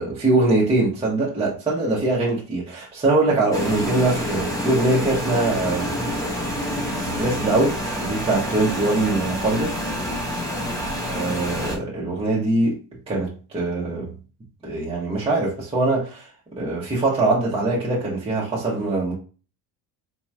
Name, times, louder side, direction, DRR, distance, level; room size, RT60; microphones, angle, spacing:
voice 1, 0.0-5.9 7.0-9.8 11.1-12.8 13.1-14.1 14.6-16.3 16.6-19.1, right 2 dB, 15° right, 0.9 m, -22 dB
sound 1, 3.5-11.8, equal, 10° left, 0.6 m, -27 dB
sound 2, 5.0-10.0, right 5 dB, 55° right, 0.8 m, -40 dB
4.3 x 2.9 x 2.3 m
cardioid pair, 130°, 44 cm